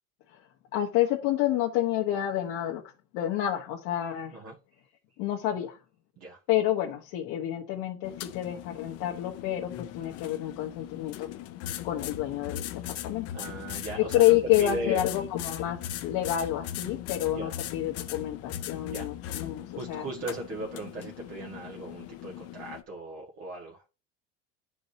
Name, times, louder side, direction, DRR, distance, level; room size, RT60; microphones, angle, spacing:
voice 1, 0.7-2.8 3.1-4.4 5.2-5.8 6.5-11.3 11.8-13.3 14.0-20.1, left 13 dB, 75° left, 1.2 m, -28 dB
sound 1, 8.0-22.8, left 12 dB, 55° left, 0.8 m, -39 dB
voice 2, 13.3-15.0 17.4-17.5 18.9-19.1 19.7-23.8, right 2 dB, 55° right, 1.8 m, -38 dB
10.5 x 4.9 x 2.8 m
cardioid pair, 135°, 29 cm